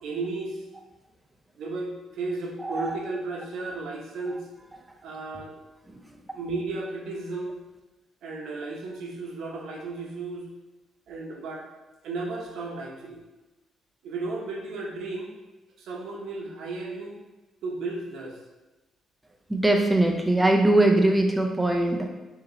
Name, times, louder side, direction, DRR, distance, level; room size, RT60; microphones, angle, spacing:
voice 1, 0.0-0.6 1.6-4.5 5.0-5.5 6.3-7.6 8.2-10.5 11.1-11.6 12.0-13.2 14.0-15.3 15.8-17.2 17.6-18.4, right 3 dB, 80° right, -1 dB, 0.9 m, -34 dB
voice 2, 2.6-2.9 19.5-22.1, right 1 dB, 10° right, 2 dB, 0.6 m, -21 dB
4.8 x 2.9 x 3.1 m, 1.1 s
cardioid pair, 90°, 0 cm